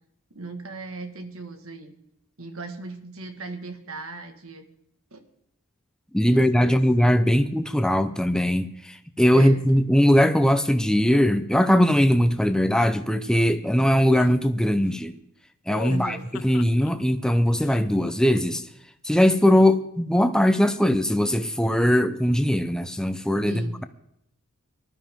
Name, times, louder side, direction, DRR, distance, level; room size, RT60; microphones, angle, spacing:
voice 1, 0.3-1.9 2.4-4.7 5.1-5.2 6.3-6.8 9.3-9.6 15.9-16.3 23.4-23.8, right 3 dB, 80° right, 1.8 m, -38 dB
voice 2, 6.1-15.1 15.7-16.2 16.4-18.7 19.0-23.8, equal, 5° left, 0.7 m, -20 dB
sound 1, 14.1-14.3 15.7-16.9 17.6-18.6 19.2-19.7, left 6 dB, 75° left, 0.5 m, -39 dB
19.5 x 12.5 x 3.7 m
head